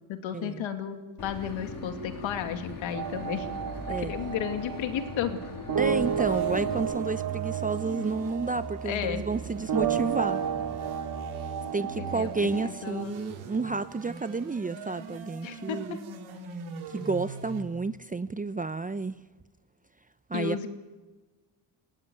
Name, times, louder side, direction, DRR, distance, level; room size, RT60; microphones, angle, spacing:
voice 1, 0.1-3.5 3.9-5.4 8.8-9.2 12.0-13.2 15.4-16.0 20.3-20.7, left 8 dB, 75° left, 7 dB, 2.6 m, -33 dB
Boat Water vehicle / Engine, 1.2-6.8, left 3 dB, 45° left, 4.4 m, -41 dB
sound 1, 2.9-13.0, right 7 dB, 50° right, 2.5 m, -32 dB
voice 2, 5.8-10.4 11.7-16.0 16.9-19.2 20.3-20.7, right 4 dB, 15° right, 13 dB, 0.8 m, -31 dB
sound 2, 5.8-17.6, right 5 dB, 80° right, 4.6 m, -41 dB
20.0 x 16.5 x 9.4 m, 1.3 s
supercardioid pair, 65°, 47 cm